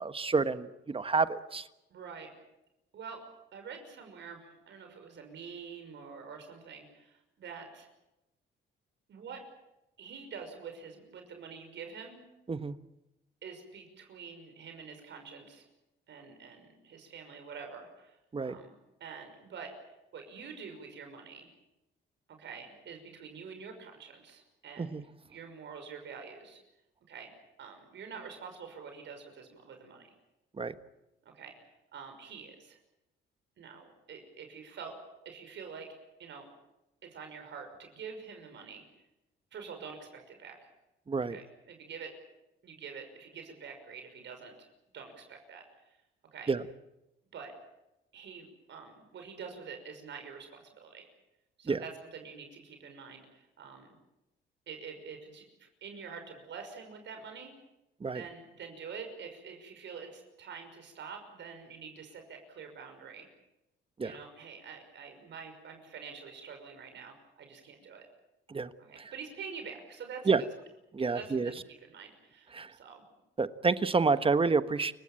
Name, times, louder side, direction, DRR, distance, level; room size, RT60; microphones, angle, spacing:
voice 1, 0.0-1.7 12.5-12.8 18.3-18.5 24.8-25.0 30.6-30.7 41.1-41.4 46.5-46.6 51.7-51.8 58.0-58.2 64.0-64.1 68.5-68.7 70.3-70.4 70.9-71.5 72.5-72.7 73.4-74.9, right 4 dB, 25° right, 12 dB, 1.3 m, -28 dB
voice 2, 1.9-2.3 2.9-3.2 3.5-7.9 9.1-9.5 10.0-12.2 13.4-15.7 16.1-18.7 19.0-19.7 20.1-21.5 22.3-26.6 27.1-27.3 27.6-30.2 31.2-31.6 31.9-32.8 33.6-35.0 35.2-35.9 36.2-36.5 37.0-38.8 39.5-40.6 41.2-42.1 42.6-44.7 44.9-46.0 46.3-46.5 47.3-47.6 48.1-51.1 51.6-54.0 54.7-57.5 58.1-63.3 64.0-68.1 68.8-70.3 71.0-73.0, right 6 dB, 65° right, 5 dB, 5.9 m, -46 dB
29.0 x 16.5 x 8.9 m, 0.93 s
cardioid pair, 90°, 20 cm